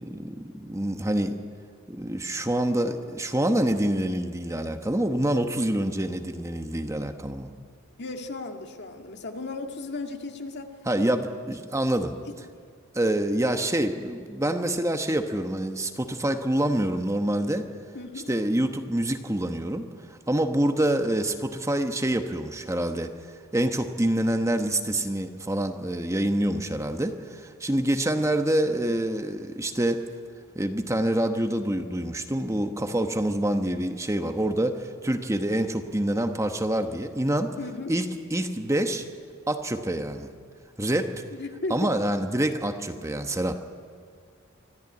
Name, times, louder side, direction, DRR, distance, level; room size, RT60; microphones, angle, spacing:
voice 1, 0.0-1.4 1.9-7.5 10.9-12.1 12.9-17.7 18.3-19.8 20.3-23.1 23.5-30.0 30.5-37.6 37.9-38.1 38.3-39.0 39.5-40.3 40.8-41.1 41.7-43.6, right 1 dB, 15° right, 6 dB, 1.1 m, -26 dB
voice 2, 8.0-10.7 12.3-12.4 17.9-18.3 37.6-37.9 41.3-41.9, left 2 dB, 50° left, 4 dB, 1.9 m, -35 dB
25.0 x 14.5 x 9.6 m, 2.1 s
head